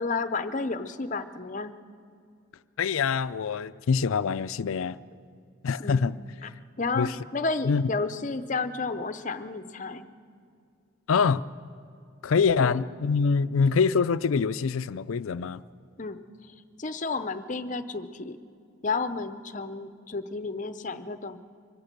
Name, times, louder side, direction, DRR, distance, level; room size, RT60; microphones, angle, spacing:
voice 1, 0.0-1.7 5.8-6.0 6.4-6.5 6.8-10.1 12.6-12.8 16.0-16.2 16.8-18.4 18.8-21.4, left 3 dB, 35° left, 0.7 m, -31 dB
voice 2, 2.8-5.0 5.6-6.2 7.0-7.1 7.7-7.8 11.1-11.4 12.2-15.6, left 5 dB, 85° left, 0.5 m, -25 dB
24.5 x 16.0 x 6.7 m
head